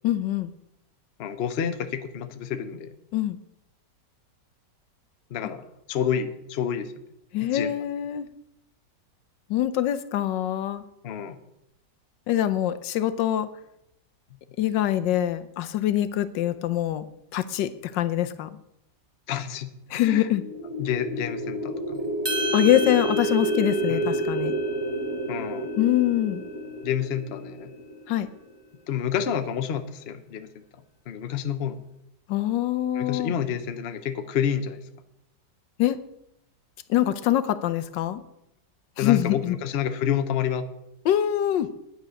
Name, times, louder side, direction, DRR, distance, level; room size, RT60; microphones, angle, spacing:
voice 1, 0.0-0.5 3.1-3.4 7.3-8.3 9.5-10.8 12.3-13.5 14.6-17.1 17.3-18.5 19.9-20.4 22.5-24.5 25.8-26.4 28.1-28.3 32.3-33.3 35.8-36.0 36.9-38.2 39.0-39.5 41.0-41.7, left 12 dB, 80° left, 12 dB, 1.4 m, -24 dB
voice 2, 1.2-2.9 5.3-6.9 7.4-7.7 11.0-11.4 19.3-20.3 20.8-22.1 23.9-24.0 25.3-25.7 26.8-27.7 28.9-30.6 31.1-31.8 32.9-34.8 39.0-40.7, left 8 dB, 50° left, 9 dB, 0.8 m, -29 dB
sound 1, 20.2-28.3, right 1 dB, 40° right, 6.2 m, -30 dB
sound 2, 22.3-26.7, right 1 dB, 15° right, 1.4 m, -35 dB
9.6 x 9.4 x 6.3 m, 0.83 s
omnidirectional pair, 1.9 m